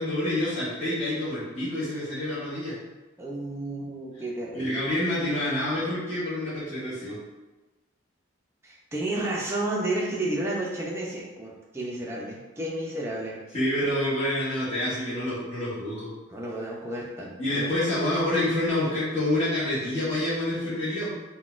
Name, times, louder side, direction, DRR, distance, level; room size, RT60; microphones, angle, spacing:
voice 1, 0.0-2.7 4.5-7.2 13.5-16.1 17.4-21.1, left 1 dB, 30° left, -13 dB, 1.1 m, -27 dB
voice 2, 3.2-4.9 8.6-13.4 16.3-17.7, right 1 dB, 15° right, -4 dB, 0.5 m, -32 dB
3.9 x 2.2 x 2.5 m, 1.1 s
head